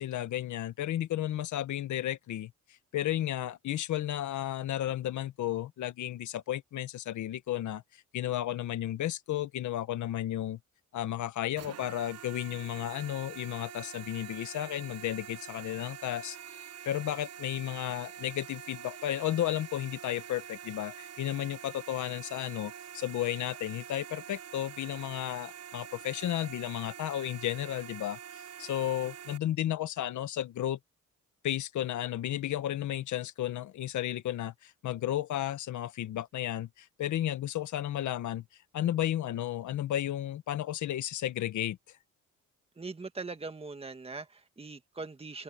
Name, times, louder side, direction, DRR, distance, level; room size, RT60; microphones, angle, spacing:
voice 1, 0.0-2.5 2.9-10.6 10.9-16.4 16.8-30.8 31.4-38.4 38.7-41.8, left 12 dB, 75° left, 1.5 m, -33 dB
sound 1, 11.5-29.4, right 9 dB, 55° right, 1.0 m, -46 dB
voice 2, 42.8-45.4, right 3 dB, 20° right, 1.8 m, -41 dB
cardioid pair, 90°, 30 cm